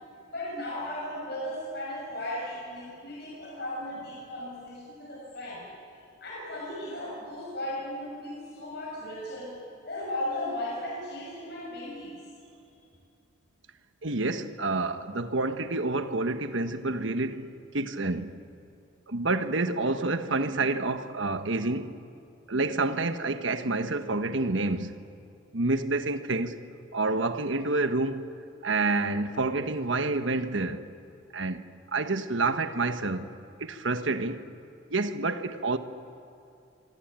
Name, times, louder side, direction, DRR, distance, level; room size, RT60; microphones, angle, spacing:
voice 1, 0.3-5.7 6.2-9.6 9.8-12.2, left 1 dB, 55° left, 6.4 m, -36 dB
voice 2, 14.0-18.3 19.1-22.0 22.5-25.0 25.5-26.6 26.9-28.3 28.6-30.8 31.3-31.6 31.9-33.3 33.6-34.4 34.9-35.8, right 3 dB, 70° right, 1.3 m, -28 dB
26.5 x 25.5 x 9.0 m
head